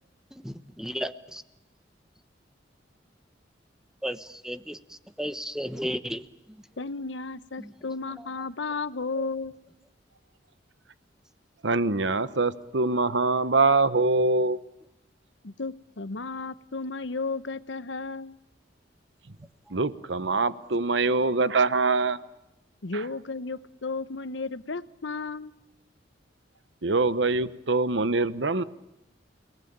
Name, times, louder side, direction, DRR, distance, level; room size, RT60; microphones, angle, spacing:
voice 1, 0.3-1.4 4.0-6.2 6.5-6.6 7.6-7.7 8.1-8.3 9.2-9.3 19.7-19.8, equal, 5° right, 1.1 m, -35 dB
voice 2, 6.8-9.5 15.4-18.4 22.8-25.5, left 3 dB, 85° left, 1.0 m, -33 dB
voice 3, 11.6-14.6 19.7-22.2 26.8-28.6, right 3 dB, 80° right, 1.1 m, -24 dB
29.5 x 19.5 x 8.9 m
head